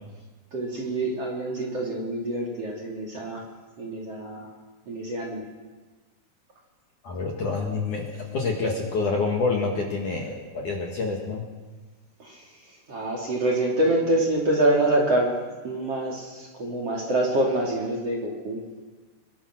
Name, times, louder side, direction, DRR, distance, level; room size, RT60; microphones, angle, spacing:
voice 1, 0.5-3.4 3.8-4.5 4.9-5.4 12.2-12.4 12.9-15.3 15.6-18.6, right 1 dB, 35° right, -1 dB, 3.5 m, -26 dB
voice 2, 7.0-11.4, left 4 dB, 50° left, 0 dB, 3.0 m, -27 dB
24.5 x 22.5 x 6.3 m, 1.3 s
omnidirectional pair, 5.6 m